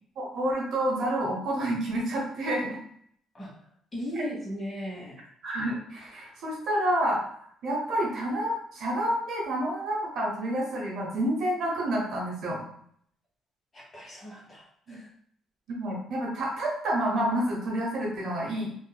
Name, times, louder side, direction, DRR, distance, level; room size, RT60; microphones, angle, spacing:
voice 1, 0.2-2.8 4.2-4.3 5.4-7.2 7.6-12.6 14.9-15.0 15.7-18.8, right 1 dB, 60° right, -3 dB, 0.9 m, -29 dB
voice 2, 3.9-5.2 13.7-15.1, equal, 25° left, -5 dB, 0.9 m, -37 dB
3.8 x 2.5 x 2.2 m, 0.65 s
cardioid pair, 135°, 0 cm